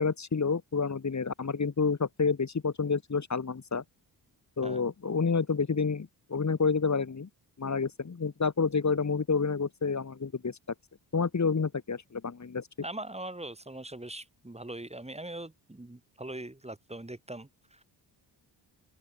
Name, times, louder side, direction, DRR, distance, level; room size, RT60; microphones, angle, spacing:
voice 1, 0.0-3.8 4.6-7.3 7.6-10.5 11.1-12.6, left 5 dB, 40° left, 3.6 m, -29 dB
voice 2, 12.8-17.8, right 1 dB, 15° right, 5.9 m, -41 dB
open air
cardioid pair, 60°, 44 cm